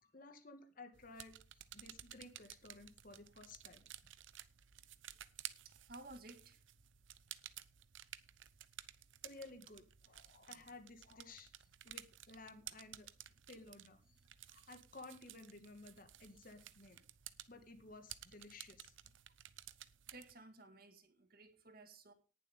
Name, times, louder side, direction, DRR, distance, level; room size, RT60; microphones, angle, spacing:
voice 1, 0.0-3.8 9.2-13.1 13.5-14.2 14.5-17.0 17.5-19.0, left 2 dB, 45° left, 1.9 m, -56 dB
sound 1, 0.9-20.3, right 12 dB, 70° right, 0.8 m, -55 dB
voice 2, 5.4-6.6 20.1-22.1, right 2 dB, 50° right, 1.9 m, -57 dB
18.5 x 7.4 x 3.6 m
head